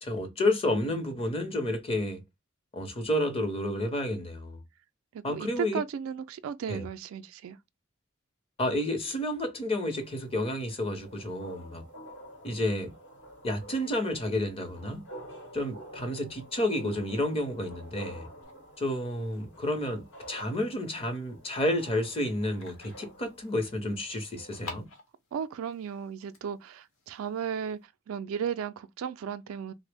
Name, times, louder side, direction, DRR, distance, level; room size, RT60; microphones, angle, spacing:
voice 1, 0.0-2.2 2.7-4.6 5.2-5.8 6.7-6.8 8.6-11.9 12.4-12.9 13.4-15.0 15.5-18.3 18.8-24.9, left 1 dB, 30° left, 0.7 m, -30 dB
voice 2, 5.1-7.6 25.3-29.7, right 7 dB, 80° right, 0.3 m, -35 dB
sound 1, 9.9-24.8, equal, 60° left, 0.9 m, -49 dB
sound 2, 18.4-27.8, left 2 dB, 90° left, 1.0 m, -51 dB
3.2 x 2.0 x 3.3 m
head